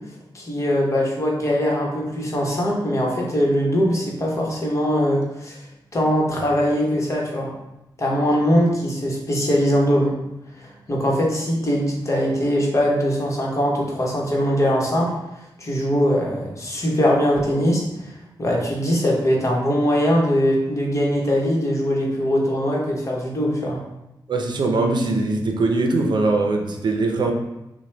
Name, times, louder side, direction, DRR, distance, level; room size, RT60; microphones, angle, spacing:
voice 1, 0.3-5.6 5.9-7.5 8.0-10.1 10.6-15.1 15.6-17.8 18.4-23.8, equal, 40° left, -2 dB, 1.0 m, -21 dB
voice 2, 24.3-27.3, right 3 dB, 70° right, 3 dB, 0.6 m, -21 dB
5.8 x 2.2 x 3.3 m, 0.92 s
wide cardioid pair, 125°, 8 cm